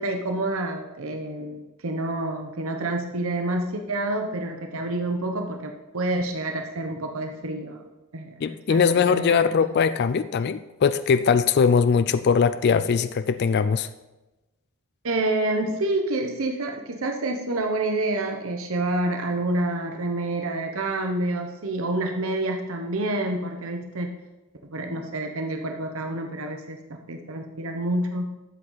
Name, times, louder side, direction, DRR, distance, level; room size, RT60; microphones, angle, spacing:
voice 1, 0.0-7.8 8.1-9.4 15.0-24.1 24.7-28.3, right 2 dB, 65° right, 4 dB, 1.0 m, -28 dB
voice 2, 8.4-13.9, left 6 dB, 50° left, 13 dB, 0.3 m, -21 dB
12.5 x 7.6 x 4.0 m, 1.1 s
head